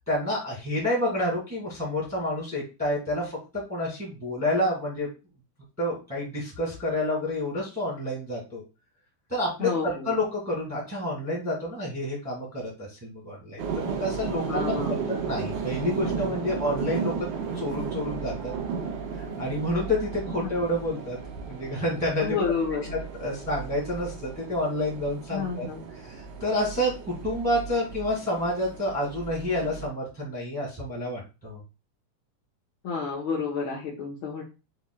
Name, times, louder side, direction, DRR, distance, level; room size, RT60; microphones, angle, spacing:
voice 1, 0.1-5.1 5.8-8.6 9.3-17.3 17.5-18.5 19.1-21.2 21.5-22.4 23.2-25.7 26.0-31.6, left 1 dB, 5° right, -5 dB, 1.3 m, -29 dB
voice 2, 9.6-10.1 14.5-15.1 20.4-20.5 22.2-23.0 25.3-25.8 32.8-34.4, left 5 dB, 65° left, -5 dB, 1.2 m, -30 dB
sound 1, 13.6-29.9, right 6 dB, 90° right, 2.5 m, -34 dB
6.0 x 3.5 x 2.2 m, 0.30 s
omnidirectional pair, 3.5 m